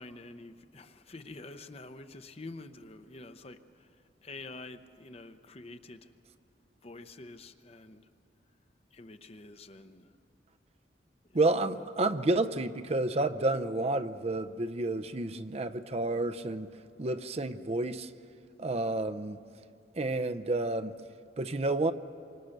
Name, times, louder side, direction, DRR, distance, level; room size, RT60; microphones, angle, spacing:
voice 1, 0.0-6.1 6.8-8.1 8.9-10.2 11.3-11.9, left 2 dB, 35° left, 0.8 m, -48 dB
voice 2, 11.3-16.7 17.0-18.1 18.6-19.4 20.0-20.9 21.4-21.9, right 2 dB, 35° right, 0.6 m, -30 dB
28.0 x 25.0 x 6.6 m
head